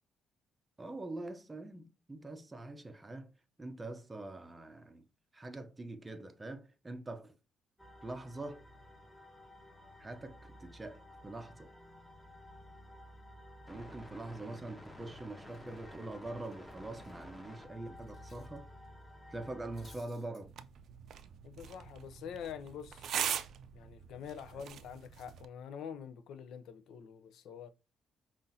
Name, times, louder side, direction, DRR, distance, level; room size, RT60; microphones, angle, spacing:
voice 1, 0.8-3.3 3.6-5.1 5.3-7.3 8.0-8.6 10.0-11.7 13.7-18.7 19.3-20.5, right 2 dB, 20° right, 0.6 m, -44 dB
sound 1, 7.8-20.0, left 1 dB, 5° left, 1.1 m, -53 dB
Cutlery silverware, 15.4-18.6 18.8-19.0 19.4-20.4, left 2 dB, 35° left, 1.8 m, -64 dB
sound 2, 20.4-25.4, right 9 dB, 70° right, 0.4 m, -41 dB
voice 2, 21.4-23.1 23.7-27.7, left 8 dB, 80° left, 0.4 m, -46 dB
5.3 x 2.5 x 2.6 m
cardioid pair, 90°, 0 cm